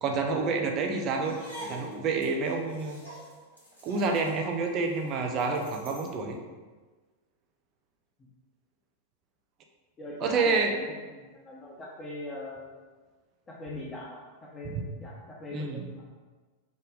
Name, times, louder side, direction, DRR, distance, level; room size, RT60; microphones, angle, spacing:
voice 1, 0.0-3.0 3.8-6.4 10.2-10.7 14.7-14.8 15.5-15.8, right 4 dB, 35° right, 3 dB, 0.6 m, -28 dB
sound 1, 1.1-6.2, equal, 90° right, 1.0 m, -46 dB
voice 2, 10.0-12.8 13.5-15.1 15.4-16.1, left 1 dB, 20° left, -5 dB, 0.7 m, -41 dB
4.9 x 2.2 x 3.7 m, 1.3 s
figure-of-eight pair, 90°, 0 cm